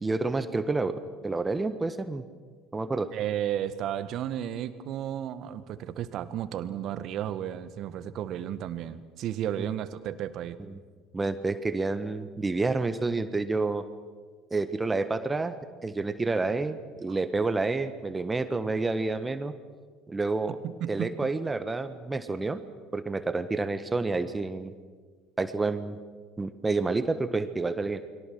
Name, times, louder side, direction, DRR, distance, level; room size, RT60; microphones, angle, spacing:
voice 1, 0.0-2.2 2.7-3.1 9.6-9.7 10.7-10.8 11.1-13.8 14.5-15.5 15.8-19.6 20.1-20.6 20.9-22.6 22.9-24.7 25.4-26.0 26.4-28.1, right 3 dB, 15° right, 11 dB, 1.4 m, -29 dB
voice 2, 3.1-10.6 17.1-17.2 20.6-21.3, right 10 dB, 50° right, 12 dB, 1.5 m, -33 dB
29.5 x 23.0 x 6.3 m, 1.5 s
figure-of-eight pair, 65°, 0 cm